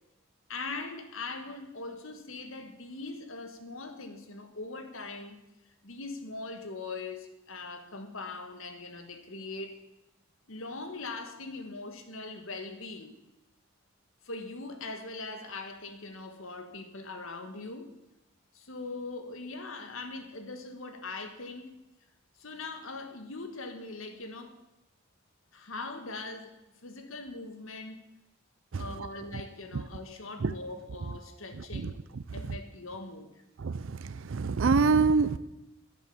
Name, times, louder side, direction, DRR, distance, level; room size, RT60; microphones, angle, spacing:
voice 1, 0.5-5.4 5.8-9.8 10.5-13.2 14.2-17.9 18.5-21.7 22.4-24.6 25.5-26.5 26.8-28.0 28.8-32.0 32.3-33.4, left 3 dB, 65° left, 1.5 m, -41 dB
voice 2, 33.6-35.4, right 4 dB, 60° right, 0.5 m, -25 dB
11.0 x 10.5 x 7.0 m
head